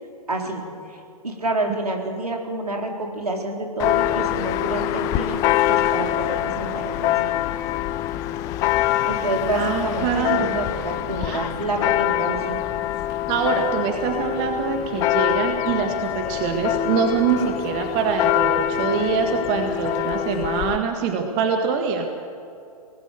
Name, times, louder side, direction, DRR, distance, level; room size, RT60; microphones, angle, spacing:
voice 1, 0.3-5.4 5.7-7.5 9.0-12.6, right 2 dB, 75° right, 1 dB, 4.0 m, -28 dB
Church bell, 3.8-20.8, left 13 dB, 15° left, 0.5 m, -24 dB
voice 2, 9.5-10.6 11.2-11.4 13.3-22.1, right 6 dB, 25° right, 4 dB, 1.7 m, -24 dB
23.5 x 19.0 x 6.8 m, 2.5 s
figure-of-eight pair, 120°, 20 cm